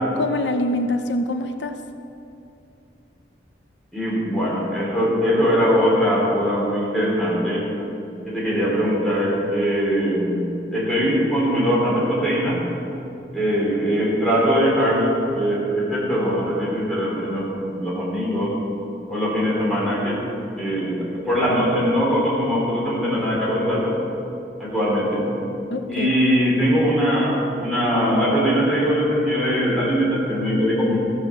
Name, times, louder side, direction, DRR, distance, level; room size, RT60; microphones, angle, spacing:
voice 1, 0.1-1.8 25.7-26.1, left 1 dB, 90° left, 7 dB, 0.7 m, -24 dB
voice 2, 3.9-7.6 8.3-12.6 13.3-18.6 19.1-20.2 20.6-24.0 24.6-25.3 25.9-31.0, equal, ahead, -7 dB, 3.4 m, -21 dB
14.0 x 7.0 x 7.0 m, 2.8 s
head